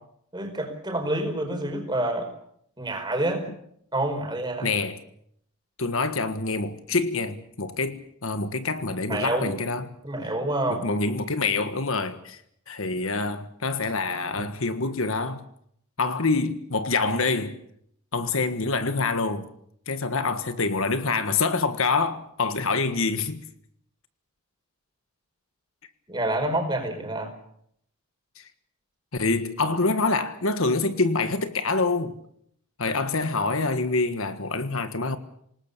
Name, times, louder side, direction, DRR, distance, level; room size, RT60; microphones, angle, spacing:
voice 1, 0.3-2.3 2.8-3.4 3.9-4.7 9.1-9.5 10.0-10.9 14.3-14.4 26.1-27.3, right 1 dB, 20° right, 5.0 m, -27 dB
voice 2, 4.6-5.0 5.8-9.9 10.7-12.4 12.7-15.4 16.0-17.6 18.1-19.5 19.9-23.4 29.1-32.2 32.8-35.2, left 3 dB, 65° left, 1.6 m, -26 dB
27.0 x 19.5 x 6.9 m
head